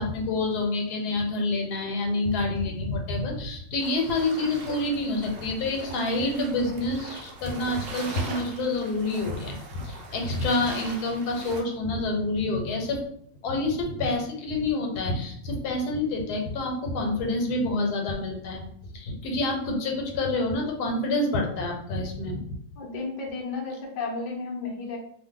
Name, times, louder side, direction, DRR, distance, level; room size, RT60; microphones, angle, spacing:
voice 1, 0.0-13.0 13.4-18.7 18.9-22.6, left 2 dB, 75° left, 2 dB, 1.2 m, -28 dB
sound 1, 3.8-11.6, right 3 dB, 85° right, 0.5 m, -41 dB
voice 2, 22.8-25.0, left 3 dB, 55° left, 0 dB, 0.5 m, -33 dB
2.7 x 2.1 x 3.7 m, 0.64 s
omnidirectional pair, 1.7 m